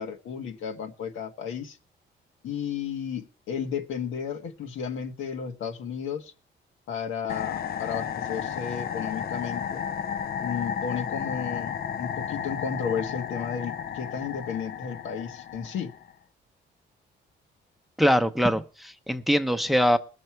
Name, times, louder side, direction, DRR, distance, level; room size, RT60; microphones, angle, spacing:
voice 1, 0.0-1.8 2.4-6.3 6.9-9.9 10.4-15.9, left 7 dB, 80° left, 1.5 m, -33 dB
sound 1, 7.3-16.1, left 8 dB, 50° left, 0.6 m, -33 dB
voice 2, 18.0-20.0, equal, ahead, 0.8 m, -23 dB
19.5 x 6.8 x 4.5 m
cardioid pair, 90°, 20 cm